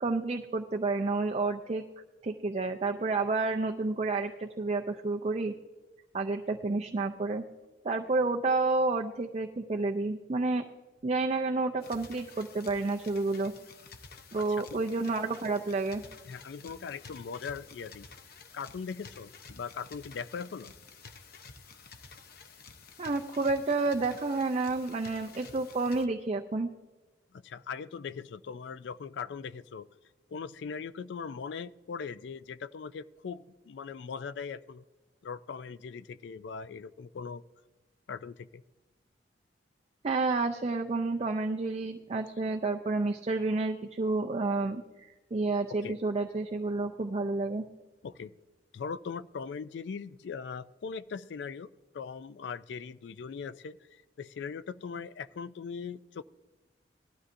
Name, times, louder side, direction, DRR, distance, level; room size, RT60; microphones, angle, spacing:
voice 1, 0.0-1.8 2.2-5.5 6.1-7.4 7.8-10.6 11.0-13.5 14.3-16.0 23.0-26.7 40.0-47.7, right 3 dB, 35° right, 3 dB, 0.5 m, -30 dB
sound 1, 11.8-26.1, left 5 dB, 55° left, 0.8 m, -51 dB
voice 2, 16.3-18.1 18.5-20.7 27.3-29.9 30.3-34.8 35.2-37.4 38.1-38.6 45.8-46.0 48.0-48.3 48.7-51.7 51.9-56.2, left 6 dB, 70° left, 15 dB, 0.4 m, -40 dB
18.5 x 12.5 x 2.6 m, 1.2 s
head